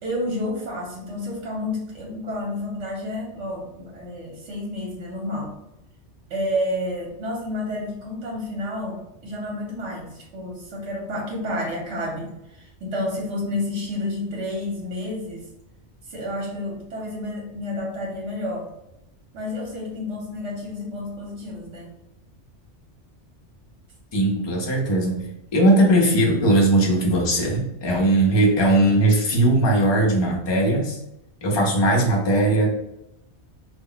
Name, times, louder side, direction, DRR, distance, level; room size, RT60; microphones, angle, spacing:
voice 1, 0.0-5.5 6.3-15.4 16.1-18.7 19.3-21.9 31.5-31.9, left 1 dB, 75° right, -2 dB, 1.0 m, -30 dB
voice 2, 24.1-31.0 31.4-32.7, right 1 dB, 35° left, -1 dB, 0.4 m, -19 dB
2.2 x 2.1 x 3.7 m, 0.85 s
omnidirectional pair, 1.2 m